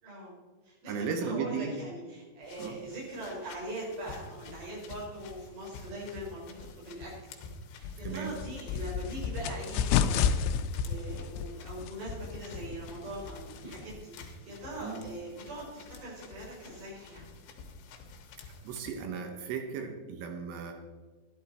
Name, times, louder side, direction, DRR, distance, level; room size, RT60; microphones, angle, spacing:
voice 1, 0.0-0.3 0.6-7.1 7.7-17.3, right 1 dB, 55° right, -4 dB, 6.8 m, -42 dB
voice 2, 0.9-1.7 2.6-2.8 8.0-8.3 14.8-15.0 18.7-20.7, right 6 dB, 75° right, 5 dB, 3.5 m, -35 dB
sound 1, 2.4-18.9, left 4 dB, 70° left, 3.4 m, -49 dB
sound 2, 7.8-14.0, left 7 dB, 90° left, 3.4 m, -32 dB
12.5 x 12.5 x 4.2 m, 1.3 s
omnidirectional pair, 5.8 m